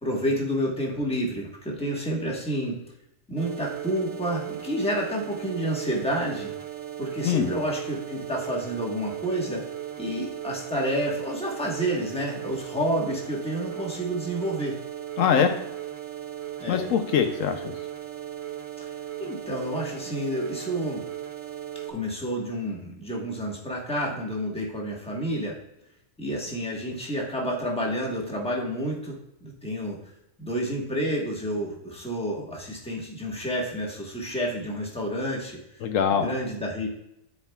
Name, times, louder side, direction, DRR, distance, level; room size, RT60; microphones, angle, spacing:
voice 1, 0.0-2.8 3.3-6.5 7.0-9.6 10.0-14.8 16.6-16.9 18.8-18.9 19.2-21.0 21.9-25.6 26.2-30.0 30.4-35.8 36.1-36.9, equal, 5° left, -3 dB, 1.2 m, -29 dB
sound 1, 3.4-21.9, right 12 dB, 75° right, 1.2 m, -37 dB
voice 2, 15.2-15.5 16.7-17.7 35.8-36.3, left 7 dB, 75° left, 7 dB, 1.0 m, -23 dB
10.5 x 4.4 x 2.3 m, 0.82 s
omnidirectional pair, 1.4 m